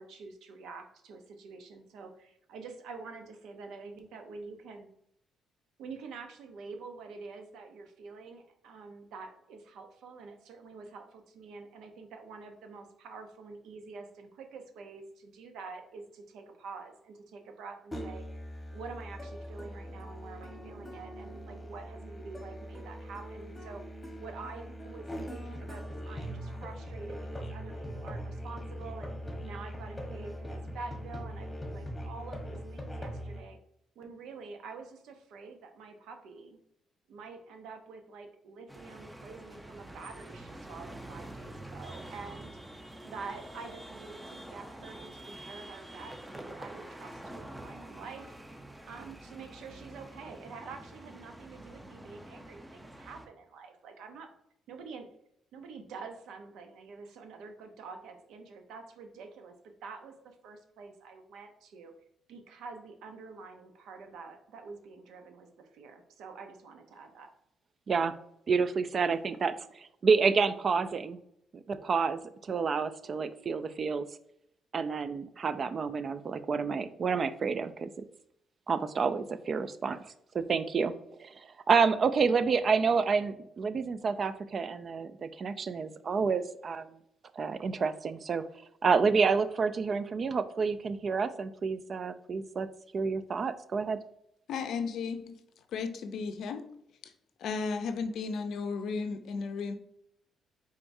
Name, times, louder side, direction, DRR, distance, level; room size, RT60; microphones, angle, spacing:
voice 1, 0.0-4.9 5.8-18.3 18.7-23.8 24.2-29.2 29.4-33.6 34.0-36.6 37.1-48.4 48.9-54.3 54.7-55.1 55.5-59.6 59.8-61.9 62.3-67.3, right 4 dB, 85° right, 0.7 m, -47 dB
Musical instrument, 17.9-33.4, equal, 15° left, 1.2 m, -41 dB
sound 1, 38.7-53.3, right 1 dB, 10° right, 0.6 m, -47 dB
voice 2, 68.5-71.2 71.7-74.1 74.7-77.9 78.7-80.9 81.2-86.9 87.4-88.4 88.8-92.7 92.9-94.0, right 5 dB, 45° right, 0.3 m, -29 dB
voice 3, 94.5-95.4 95.7-96.6 97.0-97.1 97.4-99.7, left 5 dB, 75° left, 0.4 m, -34 dB
4.5 x 3.6 x 2.6 m
cardioid pair, 90°, 0 cm